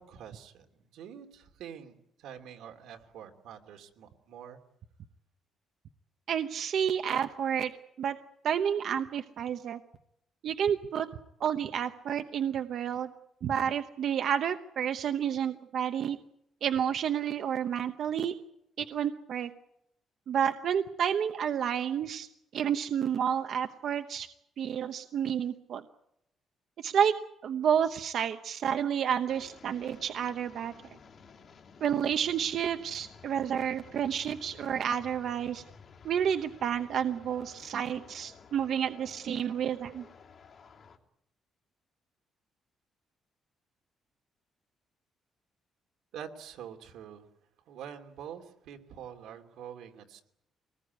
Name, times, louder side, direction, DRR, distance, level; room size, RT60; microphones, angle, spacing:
voice 1, 0.0-4.6 46.1-47.3 47.7-50.2, right 8 dB, 90° right, 4 dB, 2.9 m, -46 dB
voice 2, 6.3-7.7 8.0-8.2 8.4-9.8 10.4-11.1 11.4-13.1 13.4-16.2 16.6-18.3 18.8-19.5 20.3-22.3 22.5-24.3 24.6-25.8 26.8-27.1 27.4-30.7 31.8-35.6 36.0-40.1, right 8 dB, 50° right, 7 dB, 0.9 m, -30 dB
sound 1, 29.3-41.0, left 5 dB, 40° left, 2.7 m, -54 dB
24.0 x 19.5 x 9.5 m, 0.79 s
cardioid pair, 175°, 0 cm